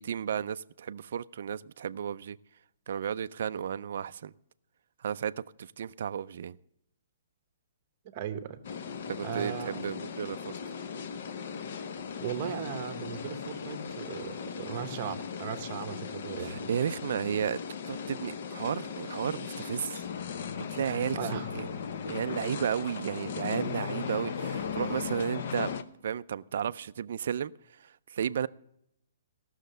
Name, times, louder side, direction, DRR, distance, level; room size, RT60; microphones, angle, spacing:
voice 1, 0.0-2.4 2.9-4.3 5.0-5.3 5.6-6.6 9.1-10.6 16.4-17.6 17.9-20.0 20.7-21.7 22.1-25.7 26.0-27.5 27.8-28.5, right 8 dB, 55° right, 13 dB, 0.3 m, -33 dB
voice 2, 8.1-8.6 9.2-9.7 12.2-16.7 20.8-21.5, right 9 dB, 30° right, 9 dB, 0.9 m, -37 dB
sound 1, 8.6-25.8, left 6 dB, 45° left, 0.7 m, -37 dB
15.5 x 6.4 x 6.6 m, 0.76 s
hypercardioid pair, 175°, 0 cm